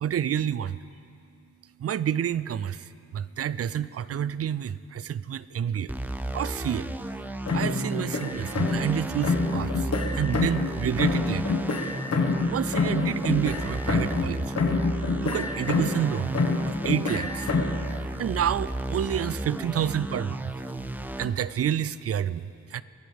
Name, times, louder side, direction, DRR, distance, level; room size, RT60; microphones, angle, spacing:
voice 1, 0.0-0.8 1.8-5.9 6.3-6.9 7.5-11.6 12.5-14.6 15.2-17.5 18.2-20.5 21.2-22.8, right 9 dB, 55° right, 17 dB, 0.4 m, -29 dB
sound 1, 5.9-21.3, right 1 dB, 5° right, 0.6 m, -34 dB
sound 2, 7.5-9.0 9.2-10.7 11.0-14.3 14.6-16.1 16.3-17.8, left 3 dB, 60° left, 1.5 m, -27 dB
22.5 x 15.0 x 3.5 m, 2.4 s
wide cardioid pair, 125°, 29 cm